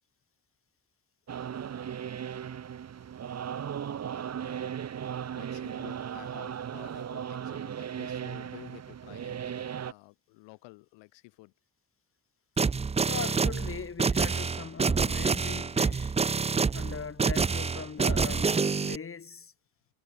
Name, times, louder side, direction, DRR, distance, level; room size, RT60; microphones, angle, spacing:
sound 1, 1.3-9.9, right 8 dB, 35° right, 1.0 m, -37 dB
voice 1, 5.1-11.5, left 25 dB, 85° left, 4.4 m, -51 dB
sound 2, 12.6-19.0, right 5 dB, 15° right, 0.5 m, -27 dB
voice 2, 13.0-16.1 16.7-19.5, left 6 dB, 30° left, 1.7 m, -40 dB
supercardioid pair, 60°, 43 cm